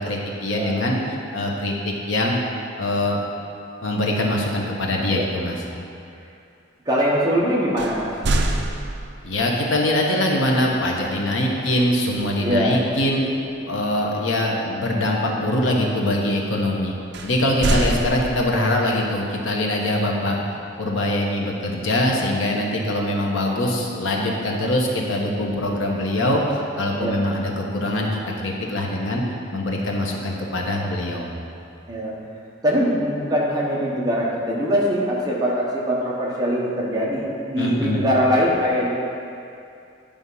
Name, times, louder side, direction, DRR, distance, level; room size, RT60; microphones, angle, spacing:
voice 1, 0.0-2.4 2.8-3.2 3.8-5.6 9.2-13.2 13.6-16.9 17.2-20.4 20.8-29.2 29.5-31.3 37.6-38.0, left 1 dB, 80° left, -1 dB, 1.1 m, -23 dB
voice 2, 6.9-8.1 12.4-12.7 17.6-17.9 27.0-27.1 31.9-32.1 32.6-38.9, equal, 20° right, -5 dB, 1.0 m, -22 dB
sound 1, 7.8-9.4 12.2-12.5 12.9-13.1 17.1-18.8, right 2 dB, 60° right, 0.5 m, -25 dB
9.9 x 3.5 x 5.4 m, 2.5 s
head